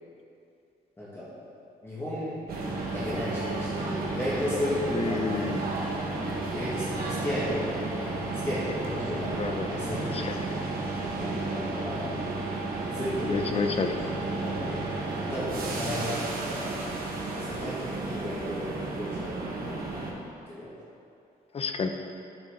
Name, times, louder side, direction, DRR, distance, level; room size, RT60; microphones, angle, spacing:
voice 1, 1.0-1.3 1.8-2.4 2.9-5.5 6.5-7.8 8.3-9.3 9.7-10.0 10.2-10.6 10.9-12.1 12.9-13.5 14.3-14.8 15.1-16.7 17.5-19.9 20.3-20.7, left 1 dB, 15° left, -10 dB, 2.0 m, -34 dB
sound 1, 2.5-20.1, right 2 dB, 65° right, 1.6 m, -32 dB
voice 2, 4.9-5.6 9.4-9.7 10.0-10.4 13.2-14.0 21.5-21.9, left 4 dB, 40° left, 6 dB, 0.7 m, -30 dB
12.5 x 6.4 x 3.9 m, 2.6 s
cardioid pair, 125°, 16 cm